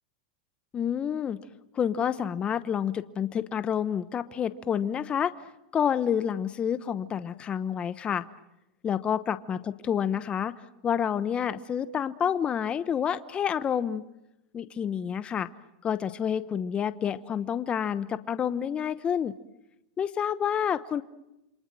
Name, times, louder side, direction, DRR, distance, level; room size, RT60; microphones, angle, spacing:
voice 1, 0.7-1.4 1.7-5.3 5.7-8.2 8.8-10.5 10.8-14.0 14.5-15.5 15.8-19.3 20.0-21.0, left 8 dB, 25° left, 14 dB, 1.0 m, -28 dB
28.5 x 26.0 x 7.7 m, 0.90 s
hypercardioid pair, 120°, 4 cm